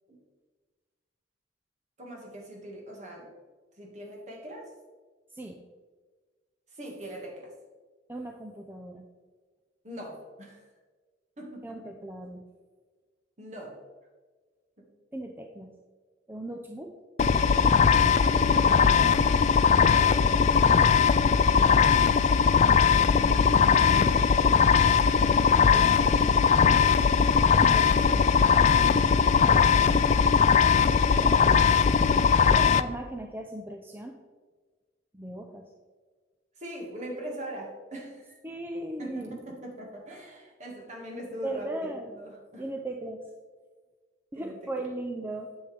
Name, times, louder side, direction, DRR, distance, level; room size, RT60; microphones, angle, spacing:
voice 1, 2.0-3.3 3.8-4.7 6.7-7.5 9.8-10.6 11.4-11.9 13.4-13.8 14.8-14.9 18.6-21.7 36.6-38.4 39.0-42.6 44.3-44.9, right 1 dB, 40° right, 0 dB, 1.9 m, -42 dB
voice 2, 8.1-9.1 11.6-12.4 15.1-15.7 16.3-17.0 23.2-24.2 25.5-26.2 27.5-28.3 30.9-31.6 32.5-34.2 35.1-35.7 38.4-39.4 41.4-42.1 42.6-43.3 44.3-45.5, right 1 dB, 10° right, 2 dB, 0.5 m, -38 dB
sound 1, 17.2-32.8, left 6 dB, 40° left, 0.3 m, -20 dB
9.6 x 7.2 x 3.4 m, 1.4 s
head